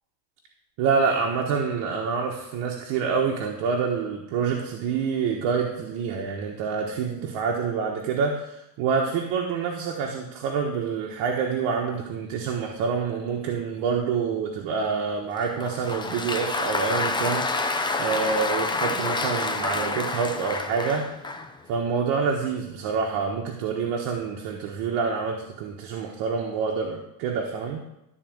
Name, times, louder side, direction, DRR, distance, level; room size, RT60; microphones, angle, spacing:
voice 1, 0.8-21.1 21.7-27.8, right 5 dB, 80° right, 0 dB, 1.5 m, -27 dB
Applause, 15.4-21.6, left 3 dB, 10° left, 0.6 m, -28 dB
13.0 x 4.3 x 7.8 m, 0.87 s
cardioid pair, 135°, 47 cm